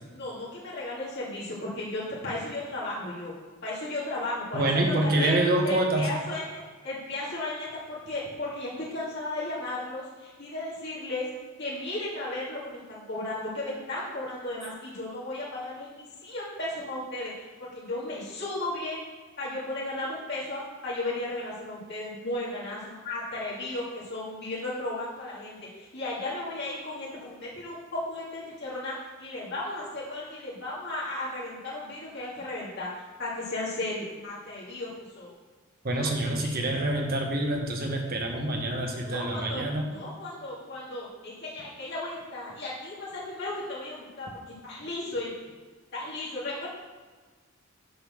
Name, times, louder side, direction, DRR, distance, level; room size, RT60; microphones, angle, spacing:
voice 1, 0.1-3.3 3.6-5.4 5.6-11.3 11.6-19.0 19.4-28.9 29.2-34.9 35.2-35.3 36.0-36.7 39.0-44.3 44.6-45.5 45.9-46.7, left 2 dB, 55° left, -7 dB, 2.2 m, -35 dB
voice 2, 4.5-6.0 35.8-39.9, right 1 dB, 45° right, 1 dB, 1.1 m, -26 dB
6.7 x 4.0 x 6.3 m, 1.4 s
head